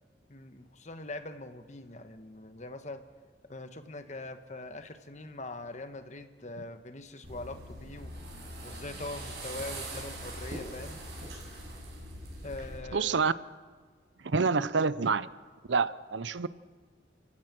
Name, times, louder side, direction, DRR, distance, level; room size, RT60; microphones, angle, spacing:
voice 1, 0.3-3.0 3.5-8.1 8.6-11.0 12.4-13.1, left 2 dB, 40° left, 9 dB, 1.3 m, -42 dB
sound 1, 7.2-12.8, right 1 dB, 60° right, 7.3 m, -42 dB
voice 2, 12.9-13.3 14.2-15.3 15.7-16.5, right 4 dB, 75° right, 17 dB, 0.7 m, -27 dB
29.5 x 16.0 x 6.2 m, 1.5 s
head